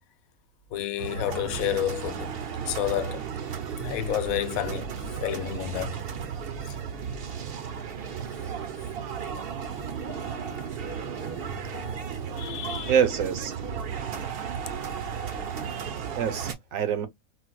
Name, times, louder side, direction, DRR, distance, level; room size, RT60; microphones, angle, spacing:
voice 1, 0.7-2.3 2.6-3.2 3.8-4.9 5.2-6.0 6.6-6.8 9.6-12.1 12.4-13.0, left 11 dB, 85° left, 1.0 m, -32 dB
sound 1, 1.0-16.5, right 7 dB, 55° right, 0.7 m, -34 dB
voice 2, 12.9-13.5 14.2-14.5 15.6-17.1, right 8 dB, 75° right, 1.1 m, -27 dB
4.5 x 2.0 x 2.3 m
omnidirectional pair, 1.4 m